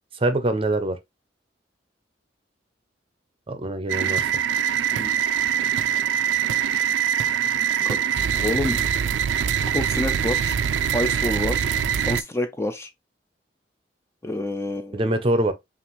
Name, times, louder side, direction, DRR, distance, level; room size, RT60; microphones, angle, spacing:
voice 1, 0.1-1.0 3.5-4.3 14.9-15.5, right 1 dB, 30° right, 0.6 m, -24 dB
sound 1, 3.9-12.2, right 8 dB, 90° right, 0.3 m, -23 dB
voice 2, 7.6-8.0 8.4-8.8 9.7-10.6 10.9-11.7 12.0-12.9 14.2-15.2, left 1 dB, 15° left, 0.4 m, -28 dB
5.7 x 2.5 x 2.9 m
head